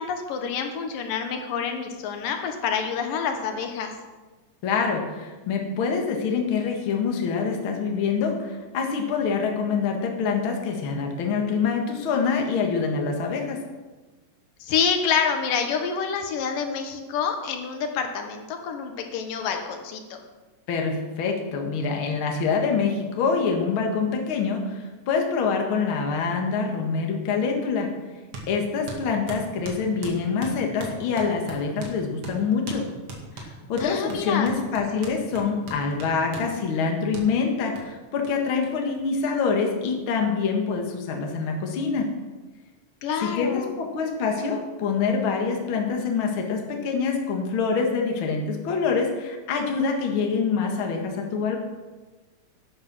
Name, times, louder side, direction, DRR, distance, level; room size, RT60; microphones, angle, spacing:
voice 1, 0.0-3.9 14.6-20.2 33.8-34.5 43.0-43.7, left 6 dB, 80° left, 5 dB, 2.8 m, -27 dB
voice 2, 4.6-13.6 20.7-27.9 28.5-32.9 33.4-42.1 43.2-51.6, left 5 dB, 45° left, 2 dB, 1.9 m, -25 dB
sound 1, 28.3-28.5 28.9-32.0 32.2-32.4 32.7-32.8 33.1-36.5 37.1-37.3 37.8-37.9 38.2-38.3 38.6-38.7 38.9-39.7, right 3 dB, 50° right, 2.8 m, -39 dB
11.5 x 10.0 x 6.1 m, 1.3 s
omnidirectional pair, 3.9 m